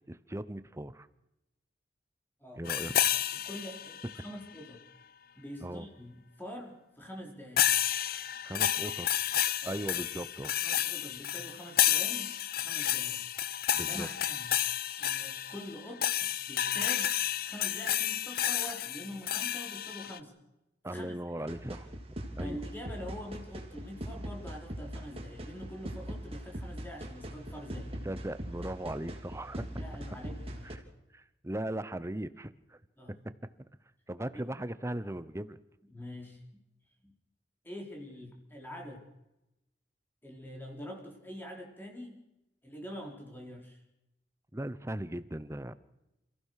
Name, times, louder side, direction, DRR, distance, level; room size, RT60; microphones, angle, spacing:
voice 1, 0.1-1.1 2.6-2.9 5.6-5.9 8.4-9.1 9.7-10.5 13.7-14.1 20.8-21.9 22.4-22.6 28.0-29.7 30.6-30.8 31.1-32.8 33.1-33.3 34.1-35.6 44.5-45.7, right 1 dB, 15° right, 14 dB, 0.9 m, -38 dB
voice 2, 2.4-3.1 3.3-4.8 5.4-7.7 8.6-8.8 9.6-10.0 10.6-13.2 13.8-14.5 15.0-20.3 20.9-21.6 22.4-28.0 29.8-30.8 33.0-33.1 34.3-34.4 35.9-36.4 37.0-37.1 37.6-39.0 40.2-42.2 42.6-43.8, equal, 10° left, 1 dB, 4.1 m, -45 dB
sound 1, 2.7-4.3 7.6-20.2, left 11 dB, 55° left, 0.8 m, -31 dB
sound 2, 21.5-30.7, equal, 35° right, 3.1 m, -41 dB
28.5 x 15.5 x 6.6 m, 0.91 s
head